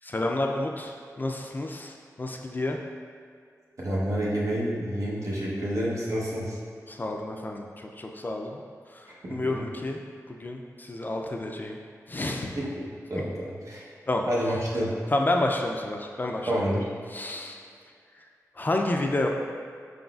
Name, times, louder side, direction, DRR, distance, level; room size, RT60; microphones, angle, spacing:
voice 1, 0.0-2.8 6.9-8.6 8.9-10.0 10.3-11.8 12.1-12.6 13.1-13.2 14.1-14.2 15.1-16.6 17.1-17.6 18.6-19.3, left 2 dB, 30° left, 2 dB, 0.3 m, -30 dB
voice 2, 3.8-6.6 9.1-9.5 12.6-13.9 14.2-15.0 16.5-16.9, equal, 60° right, -5 dB, 0.9 m, -29 dB
4.8 x 3.9 x 2.3 m, 2.2 s
wide cardioid pair, 75°, 6 cm